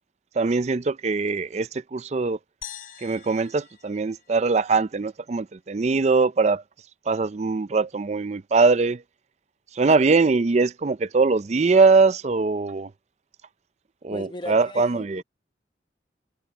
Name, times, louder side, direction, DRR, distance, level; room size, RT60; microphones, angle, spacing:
voice 1, 0.4-2.4 3.0-6.6 7.1-9.0 9.8-12.9 14.0-15.2, right 4 dB, 40° right, 0.4 m, -22 dB
sound 1, 2.6-5.1, left 10 dB, 55° left, 4.8 m, -44 dB
voice 2, 14.1-15.2, left 1 dB, 25° left, 0.9 m, -37 dB
head